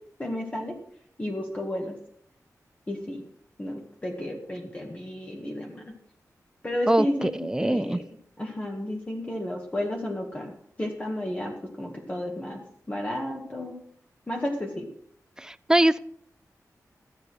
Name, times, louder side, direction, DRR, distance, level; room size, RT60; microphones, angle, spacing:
voice 1, 0.2-0.7 1.2-1.9 2.9-3.2 3.6-5.8 6.6-8.0 8.4-10.5 10.8-12.6 12.9-13.8 14.3-14.9, left 1 dB, 20° left, 0 dB, 1.8 m, -32 dB
voice 2, 6.9-8.0 15.4-16.0, right 1 dB, 10° right, 17 dB, 0.4 m, -23 dB
14.0 x 8.2 x 6.3 m, 0.65 s
wide cardioid pair, 135°, 6 cm